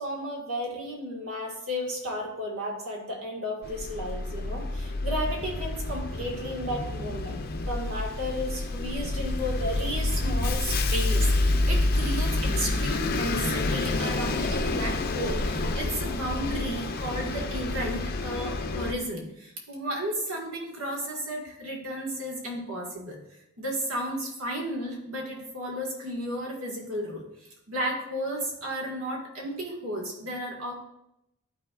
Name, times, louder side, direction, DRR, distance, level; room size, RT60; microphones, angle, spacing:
voice 1, 0.0-7.4 7.7-23.2 23.6-27.2 27.7-30.7, equal, 70° right, -1 dB, 1.8 m, -33 dB
Bus, 3.6-18.9, left 2 dB, 45° left, 0.6 m, -28 dB
11.5 x 4.2 x 2.5 m, 0.83 s
head